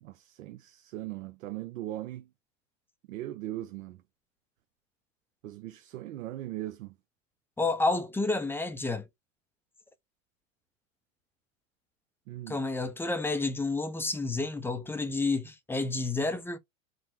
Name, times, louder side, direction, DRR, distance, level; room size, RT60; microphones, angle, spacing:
voice 1, 0.0-2.2 3.1-4.0 5.4-6.9 12.3-12.6, right 14 dB, 80° right, 0.6 m, -39 dB
voice 2, 7.6-9.1 12.5-16.6, left 3 dB, 5° left, 0.4 m, -30 dB
3.9 x 2.0 x 4.3 m
hypercardioid pair, 110°, 40 cm